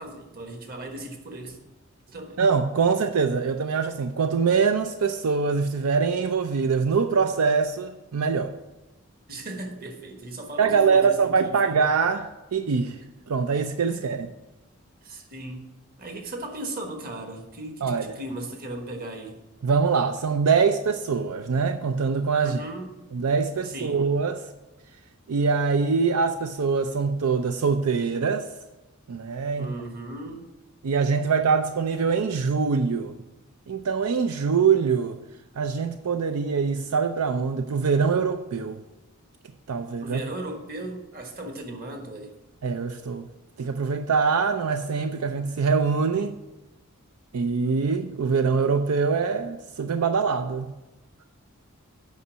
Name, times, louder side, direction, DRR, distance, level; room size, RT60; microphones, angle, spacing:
voice 1, 0.0-1.6 2.1-2.4 9.3-11.8 13.9-14.1 15.0-15.7 16.0-19.3 22.4-23.1 23.6-24.0 29.6-30.4 40.0-42.3, right 1 dB, 40° right, 4 dB, 1.3 m, -37 dB
voice 2, 2.4-8.5 10.6-13.0 13.3-14.3 17.8-18.2 19.6-22.6 23.1-24.4 25.3-28.5 29.1-29.7 30.8-33.2 33.7-35.2 35.6-38.8 39.7-40.2 42.6-43.3 43.6-46.3 47.3-50.7, right 5 dB, 80° right, 8 dB, 0.5 m, -24 dB
8.4 x 5.4 x 6.1 m, 1.0 s
head